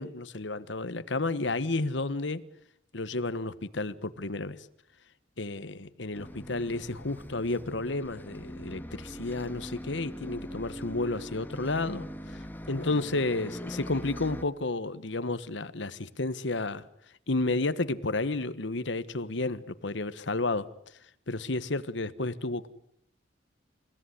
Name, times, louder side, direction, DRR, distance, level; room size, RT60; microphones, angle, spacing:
voice 1, 0.0-2.4 2.9-4.7 5.4-16.8 17.3-20.7 21.3-22.7, left 2 dB, 75° left, 1.3 m, -31 dB
Bus, 6.1-14.4, equal, 10° left, 1.8 m, -42 dB
29.5 x 16.5 x 10.0 m
head